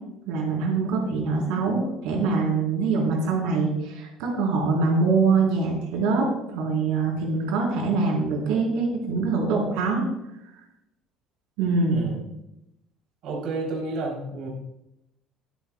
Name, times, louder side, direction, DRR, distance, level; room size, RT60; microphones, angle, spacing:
voice 1, 0.3-10.1 11.6-12.0, right 4 dB, 90° right, -1 dB, 4.1 m, -24 dB
voice 2, 11.9-12.2 13.2-14.5, right 2 dB, 55° right, -2 dB, 3.7 m, -31 dB
23.0 x 8.5 x 2.3 m, 0.87 s
cardioid pair, 170°, 0 cm